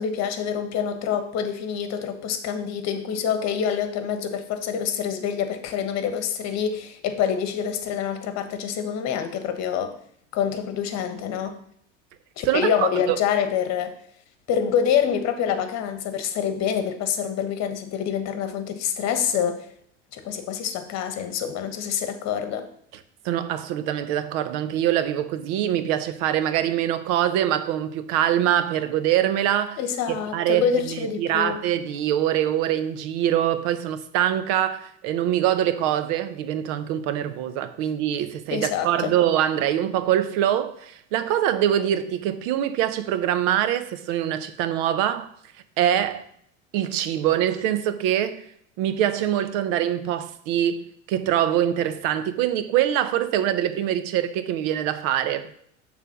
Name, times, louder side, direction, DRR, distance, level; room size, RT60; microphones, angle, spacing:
voice 1, 0.0-9.9 10.3-11.6 12.4-14.0 14.5-19.7 20.1-22.7 29.8-31.6 38.5-39.1, left 8 dB, 45° left, 1.2 m, -26 dB
voice 2, 12.5-13.2 23.2-29.8 30.3-45.3 45.8-46.3 46.7-48.4 48.8-55.5, right 11 dB, 55° right, 0.8 m, -24 dB
6.7 x 3.5 x 6.2 m
hypercardioid pair, 90°, 37 cm